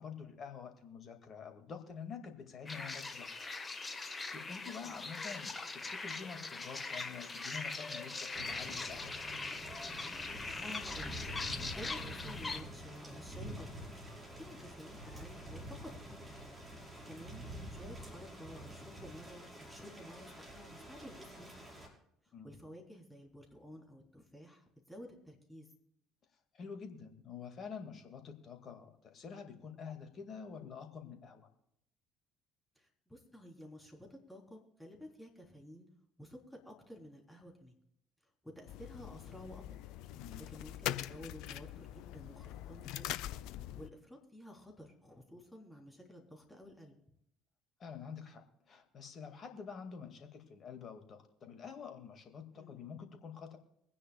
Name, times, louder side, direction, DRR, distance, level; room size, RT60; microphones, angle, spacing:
voice 1, 0.0-3.5 3.9-9.2 22.3-22.6 26.5-31.5 40.1-40.4 47.8-53.6, left 6 dB, 40° left, 6 dB, 2.1 m, -48 dB
sound 1, 2.7-12.6, left 3 dB, 25° left, 1.4 m, -41 dB
Thunder / Rain, 8.3-21.9, right 1 dB, 20° right, 5.5 m, -48 dB
voice 2, 10.6-11.2 11.7-13.9 14.4-16.6 17.0-21.7 22.2-25.7 32.8-35.9 36.2-37.8 38.4-39.8 40.4-43.2 43.8-46.9 52.5-52.8, left 1 dB, 5° left, 0 dB, 3.7 m, -52 dB
sound 2, 38.7-43.9, left 13 dB, 60° left, 0.5 m, -43 dB
23.5 x 9.9 x 2.3 m, 0.76 s
figure-of-eight pair, 55°, 0 cm